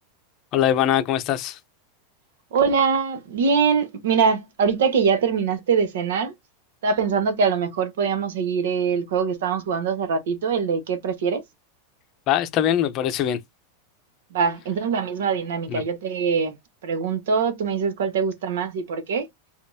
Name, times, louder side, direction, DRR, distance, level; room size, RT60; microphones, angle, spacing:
voice 1, 0.5-1.6 12.3-13.4 15.7-15.8, left 11 dB, 30° left, 0.6 m, -22 dB
voice 2, 2.5-6.3 6.8-11.4 14.3-16.5 16.8-19.3, right 6 dB, 80° right, 1.3 m, -23 dB
5.2 x 2.5 x 2.7 m
supercardioid pair, 175°, 0 cm